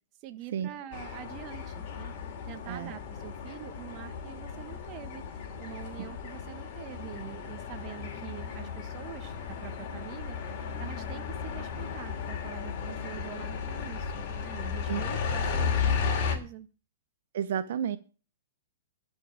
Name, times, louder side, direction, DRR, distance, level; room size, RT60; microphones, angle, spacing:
voice 1, 0.2-2.1 2.4-5.2 5.6-16.7, right 12 dB, 35° right, 1.2 m, -45 dB
sound 1, 0.9-16.4, left 6 dB, 40° left, 3.0 m, -34 dB
voice 2, 17.3-18.0, right 9 dB, 60° right, 0.7 m, -31 dB
12.0 x 5.4 x 8.6 m
hypercardioid pair, 150°, 0 cm